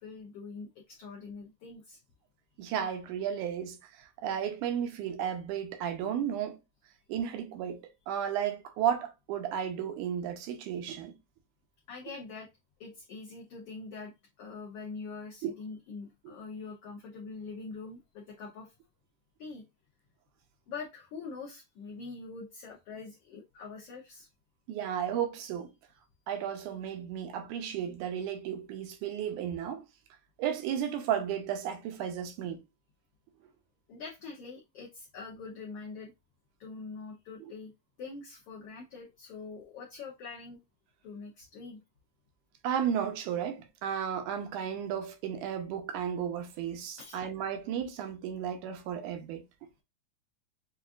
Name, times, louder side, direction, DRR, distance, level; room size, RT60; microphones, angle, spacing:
voice 1, 0.0-2.0 11.9-12.5 12.8-14.1 14.4-18.7 19.4-19.6 20.7-24.3 33.9-36.1 36.6-37.7 38.0-40.6 41.0-41.8 47.0-47.2, left 4 dB, 75° left, 1.4 m, -44 dB
voice 2, 2.6-6.6 7.1-11.1 15.4-15.5 24.7-25.7 26.3-29.8 30.4-32.6 42.6-49.4, right 9 dB, 90° right, 2.2 m, -33 dB
6.2 x 2.4 x 2.4 m
omnidirectional pair, 3.6 m